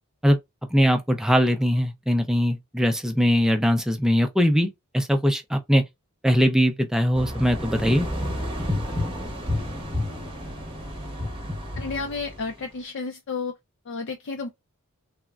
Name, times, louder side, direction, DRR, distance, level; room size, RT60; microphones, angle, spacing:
voice 1, 0.7-4.7 4.9-5.8 6.2-8.1, equal, 5° right, 0.4 m, -21 dB
sound 1, 7.1-12.6, left 1 dB, 25° right, 0.8 m, -30 dB
voice 2, 11.8-13.5 13.9-14.5, left 4 dB, 55° left, 0.4 m, -31 dB
3.4 x 2.0 x 2.3 m
head